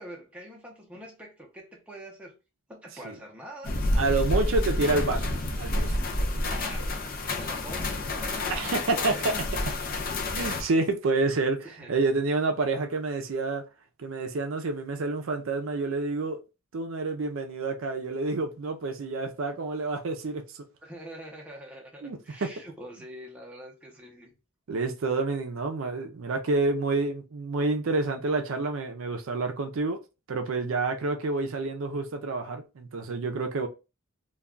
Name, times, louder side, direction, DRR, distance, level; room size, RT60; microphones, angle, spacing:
voice 1, 0.0-2.3 2.7-3.8 6.4-9.3 11.6-12.0 20.8-24.4, right 1 dB, 5° right, 0.6 m, -45 dB
sound 1, 3.6-10.6, left 1 dB, 40° left, 0.5 m, -29 dB
voice 2, 3.9-6.0 8.5-9.3 10.3-13.6 14.0-16.4 16.7-20.6 22.0-22.5 24.7-30.0 30.3-33.7, right 3 dB, 65° right, 0.5 m, -28 dB
2.3 x 2.2 x 3.6 m
head